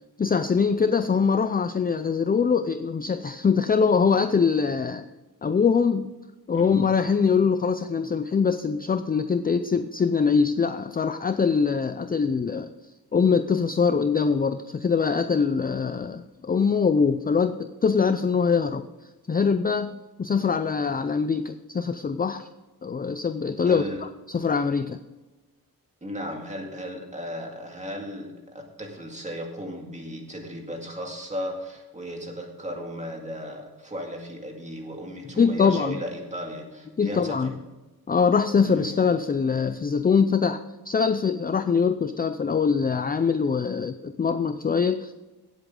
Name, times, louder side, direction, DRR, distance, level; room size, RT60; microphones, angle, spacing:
voice 1, 0.2-5.1 5.4-6.1 6.5-12.7 13.1-18.9 19.3-22.5 22.8-23.8 24.3-25.0 35.4-36.0 37.0-37.5 38.1-40.6 40.9-45.1, left 5 dB, 25° left, 10 dB, 0.4 m, -23 dB
voice 2, 6.5-6.9 23.7-24.0 26.0-37.6 38.6-39.0, equal, 20° right, 1 dB, 2.2 m, -36 dB
17.0 x 8.1 x 3.8 m, 1.2 s
wide cardioid pair, 160°, 38 cm